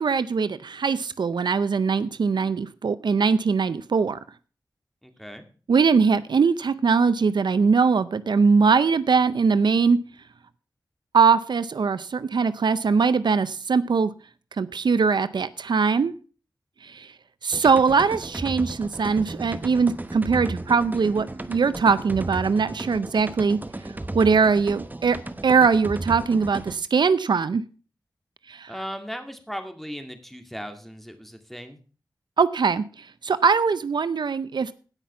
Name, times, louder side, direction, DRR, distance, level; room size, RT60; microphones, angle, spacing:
voice 1, 0.0-4.2 5.7-10.0 11.1-14.1 14.6-16.1 16.8-17.1 17.4-23.6 24.1-25.2 25.4-27.6 28.5-28.7 32.4-34.7, right 5 dB, 75° right, 0.6 m, -21 dB
voice 2, 5.0-5.4 28.7-31.8, equal, 5° left, 2.1 m, -37 dB
sound 1, 17.5-26.8, right 2 dB, 25° right, 1.0 m, -35 dB
17.0 x 5.9 x 5.6 m
wide cardioid pair, 65°, 8 cm